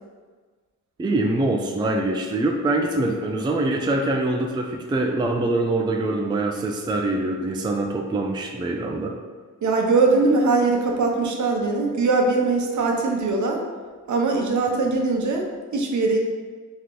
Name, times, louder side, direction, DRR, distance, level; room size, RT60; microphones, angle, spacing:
voice 1, 1.0-9.1, right 2 dB, 15° right, 2 dB, 0.4 m, -24 dB
voice 2, 9.6-13.6 14.1-16.2, right 3 dB, 60° right, 1 dB, 0.7 m, -21 dB
3.6 x 3.1 x 3.7 m, 1.5 s
cardioid pair, 95°, 32 cm